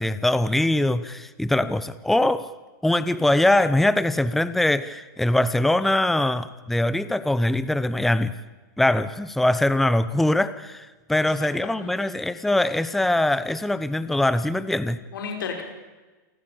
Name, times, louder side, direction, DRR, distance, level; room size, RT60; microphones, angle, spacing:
voice 1, 0.0-2.5 2.8-8.3 8.8-15.0, left 1 dB, ahead, 14 dB, 0.7 m, -22 dB
voice 2, 11.2-12.1 15.1-15.6, left 6 dB, 90° left, 3 dB, 5.4 m, -34 dB
29.0 x 14.5 x 8.6 m, 1.2 s
supercardioid pair, 150°, 11 cm